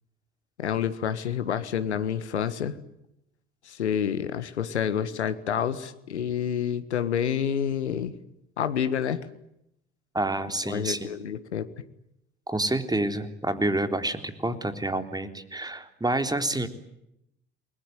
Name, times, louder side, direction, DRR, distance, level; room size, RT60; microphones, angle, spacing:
voice 1, 0.6-2.7 3.7-8.1 8.6-9.2 10.6-11.7, left 8 dB, 85° left, 12 dB, 1.6 m, -28 dB
voice 2, 10.1-11.1 12.5-16.7, right 2 dB, 10° right, 8 dB, 3.6 m, -28 dB
29.5 x 21.5 x 9.2 m, 0.82 s
figure-of-eight pair, 55°, 33 cm